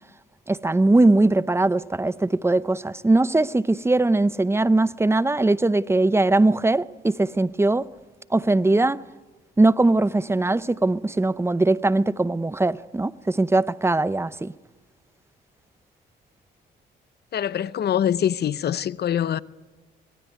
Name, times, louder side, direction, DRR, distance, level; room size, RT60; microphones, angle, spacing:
voice 1, 0.5-7.9 8.3-9.0 9.6-14.5, right 2 dB, 15° right, 0.7 m, -20 dB
voice 2, 17.3-19.4, left 9 dB, 55° left, 0.8 m, -24 dB
25.0 x 19.5 x 9.4 m
cardioid pair, 90°, 20 cm